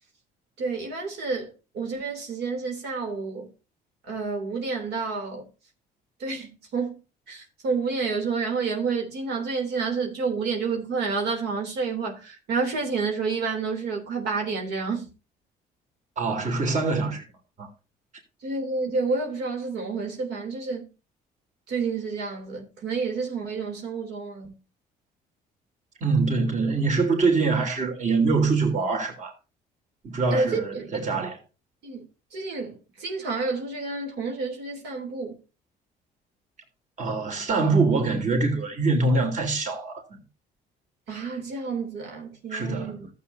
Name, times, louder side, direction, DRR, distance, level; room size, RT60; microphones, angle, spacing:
voice 1, 0.6-3.5 4.0-5.4 6.2-7.0 7.3-15.1 18.4-20.9 21.7-24.5 30.3-30.9 31.8-32.0 32.3-35.4 41.1-43.1, right 4 dB, 80° right, 3.3 m, -29 dB
voice 2, 16.2-17.2 17.6-17.7 26.0-29.3 30.0-31.4 37.0-40.0 42.5-43.0, right 3 dB, 45° right, 3.6 m, -24 dB
14.5 x 8.0 x 2.7 m
cardioid pair, 110°, 17 cm